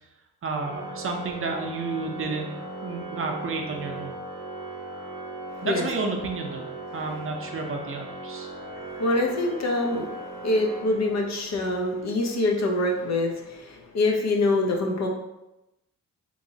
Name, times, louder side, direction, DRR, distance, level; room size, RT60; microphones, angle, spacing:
voice 1, 0.4-2.6 2.8-4.1 5.6-6.7 6.9-8.5, right 3 dB, 45° right, 3 dB, 0.6 m, -31 dB
Organ, 0.6-11.5, right 2 dB, 85° right, 0.6 m, -38 dB
voice 2, 8.7-10.1 10.4-15.1, left 2 dB, 60° left, 1 dB, 0.7 m, -25 dB
2.9 x 2.8 x 2.7 m, 0.94 s
cardioid pair, 70°, 29 cm